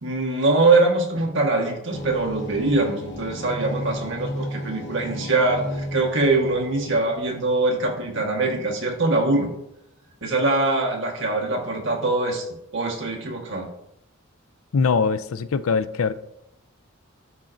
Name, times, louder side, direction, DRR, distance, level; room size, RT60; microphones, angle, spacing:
voice 1, 0.0-9.5 10.2-12.4 12.7-13.7, right 2 dB, 65° right, 1.5 m, -23 dB
sound 1, 1.9-9.3, equal, 55° left, 0.9 m, -35 dB
voice 2, 14.7-16.1, left 5 dB, 85° left, 0.4 m, -22 dB
11.5 x 4.3 x 2.6 m
head